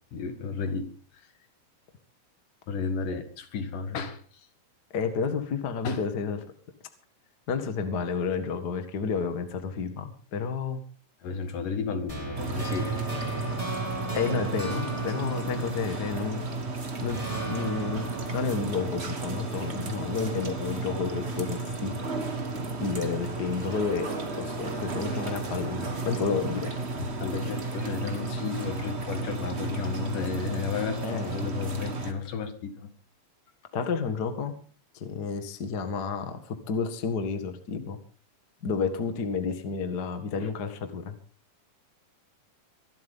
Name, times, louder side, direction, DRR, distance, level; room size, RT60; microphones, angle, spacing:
voice 1, 0.1-1.2 2.7-4.2 5.8-6.0 11.2-13.0 27.0-32.9 40.4-40.5, left 5 dB, 70° left, 7 dB, 3.4 m, -33 dB
voice 2, 4.9-6.4 7.5-10.8 14.1-16.4 17.0-17.2 17.5-21.9 22.8-24.1 24.4-26.7 31.0-31.4 33.7-34.5 34.9-38.0 38.6-41.1, left 5 dB, 40° left, 7 dB, 1.7 m, -31 dB
sound 1, 12.1-16.6 17.1-20.2, right 2 dB, 10° right, 5.8 m, -37 dB
sound 2, 12.3-32.1, right 3 dB, 40° right, 0.9 m, -33 dB
24.0 x 12.0 x 3.7 m, 0.39 s
omnidirectional pair, 3.9 m